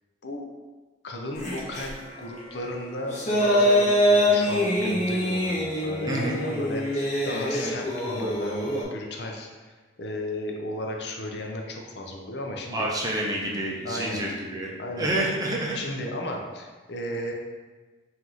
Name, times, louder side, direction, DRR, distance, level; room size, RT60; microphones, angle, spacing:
voice 1, 1.0-12.9 13.8-14.2 14.8-15.1 15.7-17.3, left 1 dB, 65° left, 1 dB, 0.6 m, -34 dB
sound 1, 1.4-1.9 2.9-8.8, equal, 40° left, 1.0 m, -24 dB
voice 2, 6.1-6.4 12.7-15.8, right 1 dB, 20° right, -3 dB, 0.6 m, -28 dB
5.8 x 2.6 x 3.0 m, 1.4 s
head